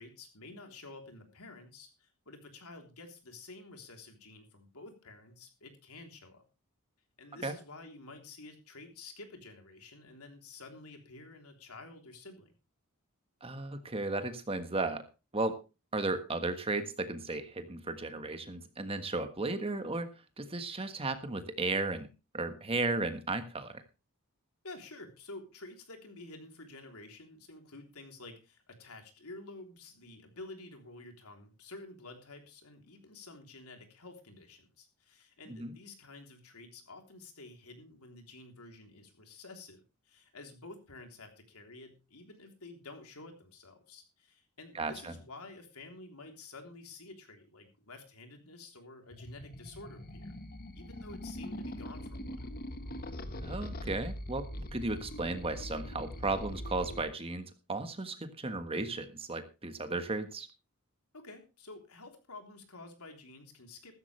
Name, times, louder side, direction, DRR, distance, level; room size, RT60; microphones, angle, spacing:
voice 1, 0.0-6.4 7.2-12.5 24.6-50.3 50.7-52.6 61.1-63.9, left 2 dB, 85° left, 4 dB, 3.4 m, -50 dB
voice 2, 13.4-15.0 15.3-15.6 15.9-20.1 20.4-22.1 22.3-23.8 35.5-35.7 44.7-45.1 53.4-60.5, right 2 dB, 25° right, 8 dB, 1.5 m, -35 dB
sound 1, 49.1-57.0, left 1 dB, 45° left, 1.4 m, -42 dB
15.0 x 13.5 x 3.3 m, 0.29 s
head